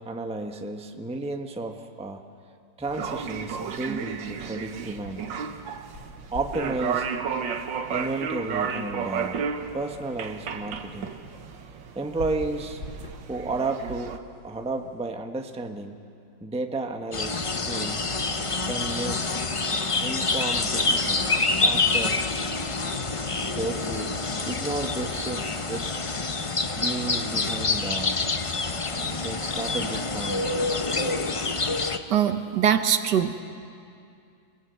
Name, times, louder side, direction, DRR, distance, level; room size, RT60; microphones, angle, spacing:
voice 1, 0.0-2.2 2.8-5.3 6.3-7.1 7.9-9.4 9.7-11.1 11.9-12.8 13.3-14.1 14.4-16.0 16.4-18.1 18.6-19.2 20.0-22.2 23.5-24.1 24.5-25.9 26.8-28.2 29.2-30.5 30.8-30.9, right 2 dB, 5° right, 4 dB, 0.8 m, -32 dB
sound 1, 2.8-14.2, right 6 dB, 90° right, 1.8 m, -33 dB
sound 2, 5.6-15.0, left 1 dB, 60° left, 3.8 m, -46 dB
sound 3, 17.1-32.0, left 3 dB, 40° left, 0.4 m, -27 dB
voice 2, 32.1-33.4, right 9 dB, 70° right, 9 dB, 1.5 m, -22 dB
28.0 x 20.5 x 8.2 m, 2.5 s
omnidirectional pair, 2.0 m